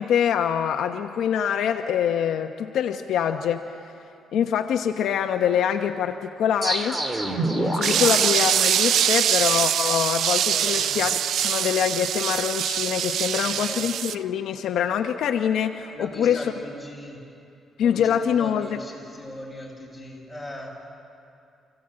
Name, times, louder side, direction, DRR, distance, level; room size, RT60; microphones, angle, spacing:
voice 1, 0.0-3.6 4.3-7.0 7.5-11.2 11.4-16.5 17.8-18.8, left 8 dB, 75° left, 6 dB, 1.0 m, -24 dB
sound 1, 6.6-9.4, right 1 dB, 20° right, 2.7 m, -27 dB
sound 2, 7.8-14.2, right 9 dB, 70° right, 0.5 m, -23 dB
voice 2, 10.5-11.0 13.3-13.8 15.9-17.2 17.8-20.7, left 1 dB, 5° left, -3 dB, 7.6 m, -39 dB
28.5 x 16.0 x 8.9 m, 2.5 s
cardioid pair, 90°, 0 cm